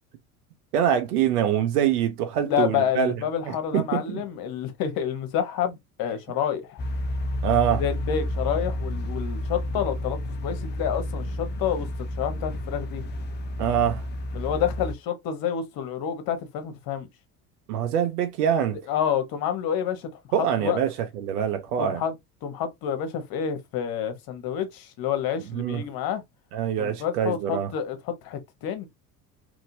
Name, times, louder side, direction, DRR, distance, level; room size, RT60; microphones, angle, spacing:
voice 1, 0.7-3.2 3.5-4.2 7.4-7.8 13.6-14.0 17.7-18.8 20.3-22.0 25.5-25.8 26.5-27.7, right 9 dB, 75° right, 0.8 m, -24 dB
voice 2, 2.4-6.8 7.8-11.9 12.2-13.0 14.3-17.1 18.9-20.1 20.4-20.8 21.8-22.1 22.4-26.2 26.8-28.9, left 9 dB, 50° left, 0.9 m, -28 dB
sound 1, 6.8-14.9, left 1 dB, 25° left, 0.4 m, -30 dB
2.9 x 2.7 x 2.5 m
hypercardioid pair, 65°, 47 cm